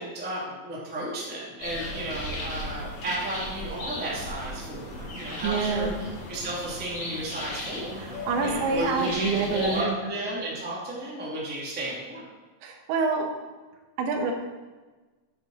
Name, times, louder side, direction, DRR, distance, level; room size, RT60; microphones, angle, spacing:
voice 1, 0.0-12.2, right 1 dB, 5° right, -6 dB, 1.0 m, -33 dB
sound 1, 1.6-9.8, left 1 dB, 85° left, 5.1 m, -36 dB
voice 2, 5.4-5.9 8.0-10.0 12.6-13.3 14.0-14.3, right 5 dB, 85° right, 3 dB, 3.4 m, -27 dB
10.5 x 7.9 x 4.2 m, 1.3 s
omnidirectional pair, 5.1 m